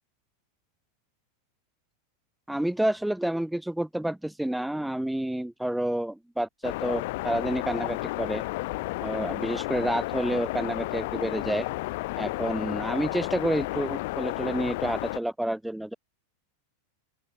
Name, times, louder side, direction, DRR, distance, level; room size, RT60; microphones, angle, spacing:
voice 1, 2.5-8.4 9.0-11.7 12.2-15.9, right 1 dB, 5° right, 1.6 m, -29 dB
sound 1, 6.6-15.2, left 21 dB, 50° left, 0.9 m, -32 dB
open air
figure-of-eight pair, 90°, 0 cm